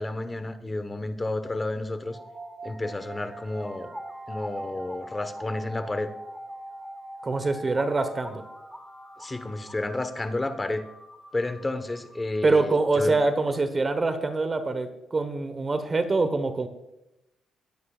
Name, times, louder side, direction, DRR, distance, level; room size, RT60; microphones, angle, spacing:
voice 1, 0.0-2.2 2.6-3.9 4.3-6.1 9.2-10.8 11.3-13.2, left 2 dB, 20° left, 9 dB, 1.2 m, -31 dB
flutey loop, 2.0-13.0, right 1 dB, ahead, 1.5 m, -42 dB
voice 2, 7.2-8.4 12.4-16.7, right 3 dB, 30° right, 10 dB, 1.2 m, -25 dB
20.0 x 9.5 x 2.5 m, 0.89 s
cardioid pair, 90°, 0 cm